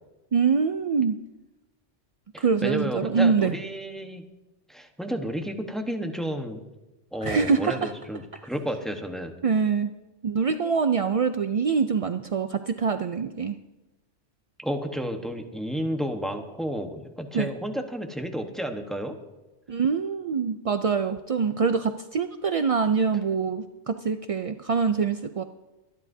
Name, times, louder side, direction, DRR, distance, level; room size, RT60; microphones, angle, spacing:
voice 1, 0.3-1.1 2.4-3.5 7.2-7.9 9.4-9.9 10.2-13.6 17.3-17.5 19.7-25.4, right 5 dB, 60° right, 9 dB, 0.3 m, -24 dB
voice 2, 2.3-4.2 4.7-6.6 7.1-9.3 14.6-19.1, equal, ahead, 3 dB, 1.0 m, -31 dB
24.5 x 10.5 x 2.7 m, 1.0 s
omnidirectional pair, 1.2 m